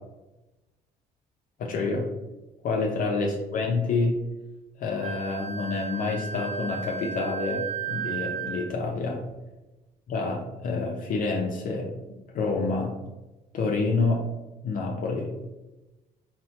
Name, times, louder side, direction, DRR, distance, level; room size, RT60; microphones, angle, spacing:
voice 1, 1.6-2.1 2.6-4.2 4.8-9.2 10.1-11.9 12.3-12.9 13.5-14.2 14.6-15.3, left 3 dB, 55° left, 0 dB, 0.5 m, -28 dB
Wind instrument woodwind instrument, 5.0-8.7, right 7 dB, 40° right, 0.8 m, -34 dB
4.2 x 2.1 x 2.8 m, 1.1 s
cardioid pair, 110°, 17 cm